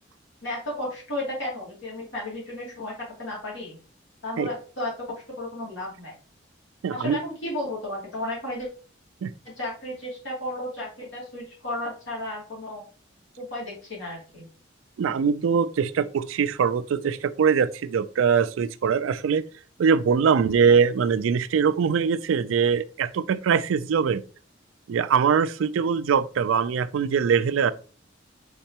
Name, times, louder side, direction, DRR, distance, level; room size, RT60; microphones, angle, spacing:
voice 1, 0.4-3.8 4.2-6.1 6.9-8.7 9.4-12.8 13.4-14.5, left 1 dB, 70° left, 2.6 m, -33 dB
voice 2, 6.8-7.2 9.2-9.3 15.0-19.4 19.8-24.2 24.9-27.7, right 6 dB, 85° right, 0.3 m, -22 dB
4.4 x 4.0 x 2.8 m
head